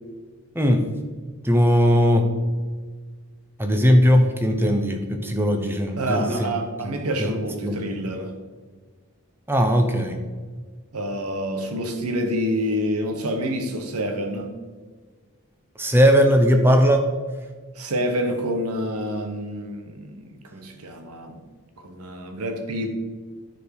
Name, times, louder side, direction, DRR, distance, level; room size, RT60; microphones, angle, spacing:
voice 1, 1.4-2.3 3.6-6.5 6.8-6.9 7.2-7.3 7.6-7.8 9.5-10.2 15.8-17.1, equal, 10° right, 0.7 m, -18 dB
voice 2, 6.0-8.3 10.9-14.5 17.8-21.4 21.8-23.0, equal, 90° right, 1.1 m, -27 dB
9.9 x 4.6 x 4.8 m
head